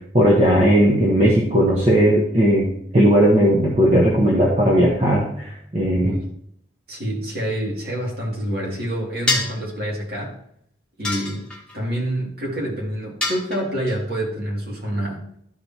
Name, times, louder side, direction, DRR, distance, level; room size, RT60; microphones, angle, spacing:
voice 1, 0.1-2.7 2.9-6.1, equal, 35° right, -3 dB, 1.1 m, -17 dB
voice 2, 6.0-6.3 6.9-10.4 11.0-11.5 11.7-15.2, right 1 dB, 55° right, -3 dB, 2.5 m, -27 dB
sound 1, 9.3-9.7 11.0-11.8 13.2-13.9, left 2 dB, 5° left, 1.4 m, -25 dB
12.5 x 5.1 x 2.9 m, 0.70 s
head